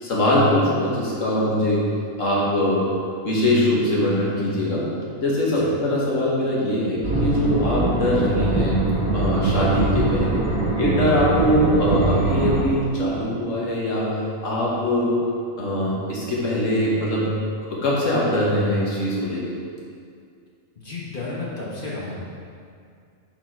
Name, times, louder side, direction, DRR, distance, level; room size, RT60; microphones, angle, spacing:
voice 1, 0.0-1.8 2.2-2.8 3.2-4.8 5.2-8.8 9.1-10.4 10.8-14.1 14.4-15.1 15.6-17.3 17.7-19.4, left 1 dB, 70° left, -5 dB, 1.7 m, -22 dB
sound 1, 7.0-12.6, right 3 dB, 25° right, 1.8 m, -23 dB
voice 2, 20.8-22.2, left 3 dB, 45° left, -6 dB, 1.1 m, -32 dB
6.4 x 4.5 x 4.5 m, 2.3 s
omnidirectional pair, 1.4 m